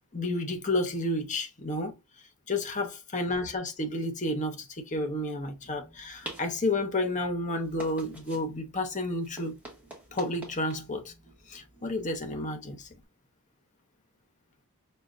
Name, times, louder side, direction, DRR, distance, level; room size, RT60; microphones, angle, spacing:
voice 1, 0.1-1.9 2.5-9.6 10.1-11.1 11.5-12.9, left 2 dB, 35° left, 0.8 m, -31 dB
sound 1, 5.5-13.0, right 1 dB, 5° right, 1.2 m, -49 dB
6.1 x 2.3 x 2.4 m
head